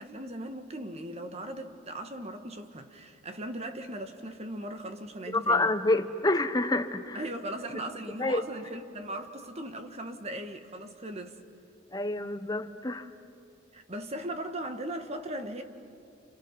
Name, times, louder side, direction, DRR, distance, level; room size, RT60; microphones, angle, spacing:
voice 1, 0.0-5.7 7.1-11.4 13.7-15.6, right 1 dB, 35° right, 1.6 m, -38 dB
voice 2, 5.3-7.2 8.2-8.4 11.9-13.1, left 2 dB, 20° left, 1.0 m, -27 dB
29.5 x 29.5 x 6.0 m
head